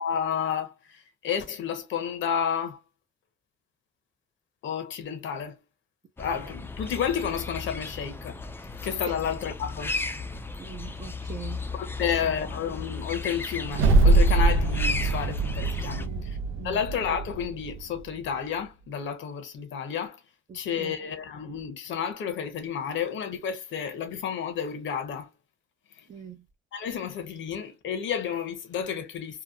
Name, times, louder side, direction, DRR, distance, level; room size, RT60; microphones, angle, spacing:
voice 1, 0.0-2.8 4.6-5.6 6.2-9.9 11.8-16.4 16.6-20.2 20.5-25.3 26.7-29.4, left 7 dB, 70° left, 0.8 m, -31 dB
sound 1, 6.2-16.1, left 3 dB, 10° left, 0.4 m, -35 dB
voice 2, 10.6-11.6 12.0-12.6 15.9-16.2 16.6-16.8 20.5-20.9 26.1-26.4, right 7 dB, 40° right, 0.6 m, -42 dB
sound 2, 13.7-18.0, right 2 dB, 90° right, 0.5 m, -23 dB
2.8 x 2.2 x 2.3 m
cardioid pair, 90°, 20 cm